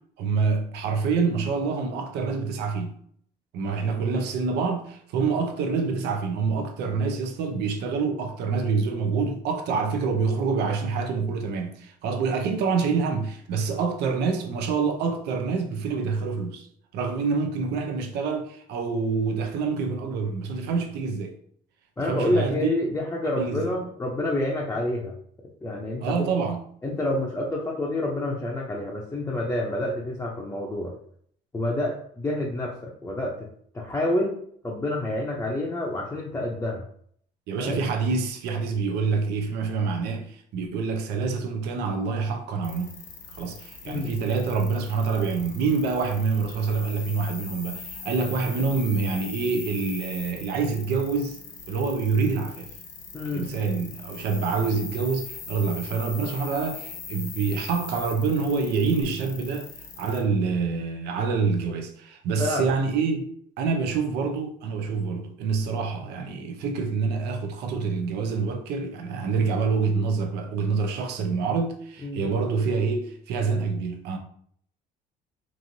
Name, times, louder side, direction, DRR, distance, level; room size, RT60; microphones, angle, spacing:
voice 1, 0.2-3.0 3.5-16.7 16.9-21.3 22.0-22.7 23.4-23.8 26.0-26.6 37.5-43.0 43.3-51.4 51.7-52.7 53.3-59.7 60.0-63.3 63.6-74.2, right 5 dB, 80° right, 0.5 m, -26 dB
voice 2, 22.0-25.1 25.6-26.3 26.8-30.9 31.5-33.4 33.7-34.3 34.6-36.8 37.6-37.9 43.9-44.1 53.1-53.5 62.4-62.7 72.0-72.3, left 1 dB, 15° left, 0.5 m, -28 dB
sound 1, 42.6-60.2, left 5 dB, 55° left, 0.8 m, -41 dB
3.0 x 2.5 x 2.6 m
cardioid pair, 110°, 17 cm